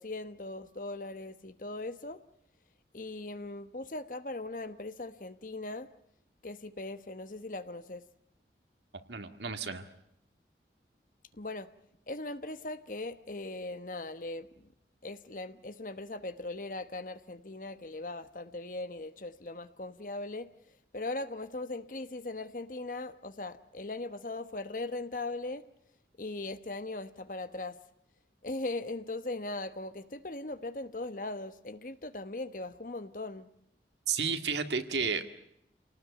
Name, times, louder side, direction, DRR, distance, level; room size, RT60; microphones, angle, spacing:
voice 1, 0.0-2.2 2.9-5.9 6.4-8.0 11.3-11.7 12.1-14.7 15.0-20.5 20.9-25.6 26.2-27.8 28.4-33.5, left 2 dB, 50° left, 12 dB, 1.1 m, -39 dB
voice 2, 9.1-9.9 34.1-35.3, right 5 dB, 80° right, 8 dB, 1.9 m, -32 dB
28.0 x 18.5 x 9.4 m, 0.79 s
head